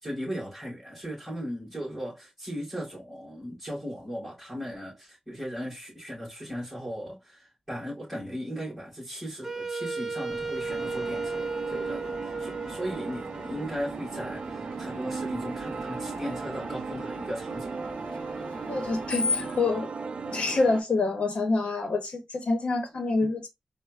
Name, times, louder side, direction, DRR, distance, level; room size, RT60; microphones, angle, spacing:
voice 1, 0.0-17.7, equal, ahead, 2.7 m, -37 dB
Wind instrument woodwind instrument, 9.4-14.4, right 3 dB, 15° right, 0.7 m, -35 dB
Screech, 10.3-19.6, left 3 dB, 50° left, 0.3 m, -40 dB
sound 1, 10.7-20.8, right 4 dB, 60° right, 0.4 m, -37 dB
voice 2, 18.7-19.9 20.3-23.5, left 3 dB, 70° left, 0.8 m, -27 dB
4.5 x 2.1 x 3.2 m
wide cardioid pair, 100°, 2 cm